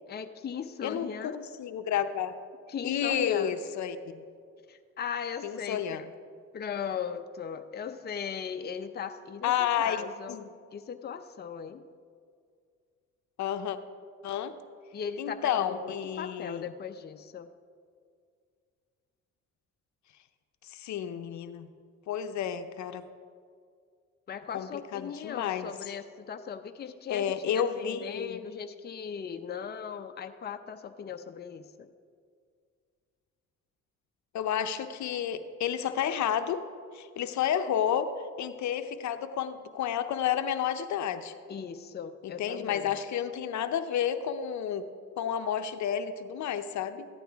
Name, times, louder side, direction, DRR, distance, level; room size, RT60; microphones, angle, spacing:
voice 1, 0.1-1.4 2.7-3.5 4.7-9.5 9.8-10.4 10.7-11.8 14.9-17.5 24.3-31.9 41.5-42.9, left 7 dB, 35° left, 7 dB, 0.6 m, -38 dB
voice 2, 0.8-2.3 2.8-4.2 5.4-6.0 9.4-10.5 13.4-13.8 14.2-14.5 15.2-16.7 20.6-21.7 22.1-23.0 24.5-25.7 27.1-28.4 34.3-36.6 36.9-41.3 42.2-44.9 45.2-47.1, left 9 dB, 70° left, 9 dB, 0.7 m, -31 dB
14.5 x 11.0 x 3.5 m, 2.1 s
cardioid pair, 90°, 30 cm